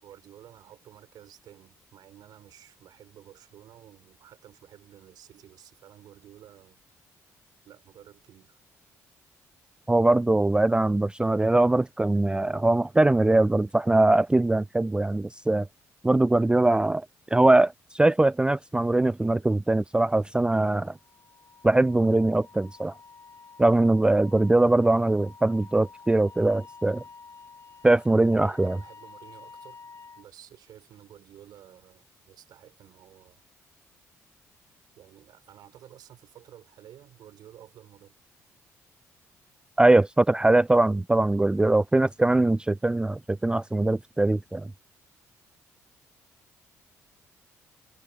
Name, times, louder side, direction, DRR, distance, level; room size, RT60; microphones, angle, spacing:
voice 1, 0.0-6.8 7.6-8.6 28.4-29.8 30.2-33.4 35.0-38.2, right 11 dB, 60° right, 3.9 m, -52 dB
voice 2, 9.9-15.7 16.0-17.1 17.3-20.9 21.6-22.9 23.6-27.0 27.8-28.8 39.8-44.7, right 2 dB, 10° right, 0.4 m, -22 dB
Wind instrument woodwind instrument, 20.8-30.3, left 4 dB, 40° left, 1.6 m, -50 dB
figure-of-eight pair, 45°, 8 cm